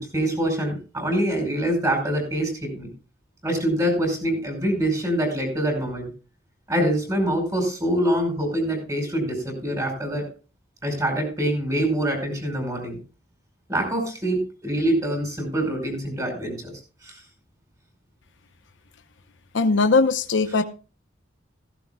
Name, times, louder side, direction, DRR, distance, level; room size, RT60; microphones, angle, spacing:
voice 1, 0.0-2.9 3.4-6.1 6.7-10.2 10.8-13.0 13.7-16.7 17.0-17.2, right 1 dB, 20° right, 4 dB, 5.0 m, -25 dB
voice 2, 19.5-20.6, left 3 dB, 80° left, 8 dB, 0.8 m, -19 dB
15.5 x 15.5 x 2.3 m, 0.35 s
head